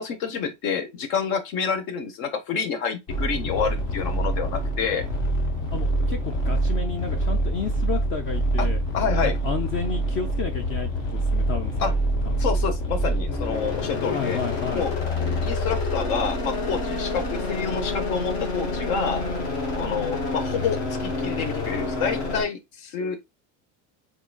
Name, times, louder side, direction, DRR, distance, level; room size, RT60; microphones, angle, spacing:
voice 1, 0.0-5.0 8.6-8.7 8.9-9.3 11.8-11.9 12.4-14.4 14.7-14.9 15.4-19.2 19.7-23.3, left 6 dB, 70° left, 1.1 m, -28 dB
sound 1, 3.1-22.4, equal, 50° left, 1.5 m, -26 dB
voice 2, 5.7-8.8 9.2-11.9 12.2-12.3 14.1-14.9, left 6 dB, 35° left, 0.5 m, -31 dB
3.7 x 3.7 x 2.2 m
cardioid pair, 165°, 37 cm